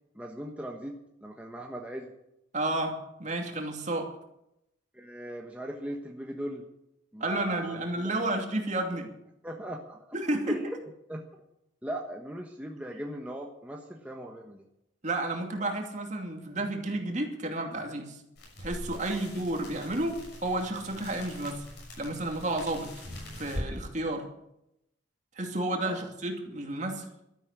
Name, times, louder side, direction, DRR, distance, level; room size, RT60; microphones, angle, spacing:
voice 1, 0.1-2.1 4.9-6.6 7.1-8.1 9.4-10.2 10.5-10.7 11.1-11.2 11.8-14.6 19.0-19.2 25.8-26.1, equal, 5° right, 0 dB, 1.2 m, -39 dB
voice 2, 2.5-4.1 7.2-9.1 10.1-10.6 15.0-18.2 18.6-21.7 22.0-22.9 23.3-24.3 25.4-27.1, right 2 dB, 40° right, 3 dB, 2.6 m, -31 dB
sound 1, 18.4-23.7, left 1 dB, 60° left, 6.6 m, -42 dB
13.0 x 11.0 x 8.2 m, 0.83 s
head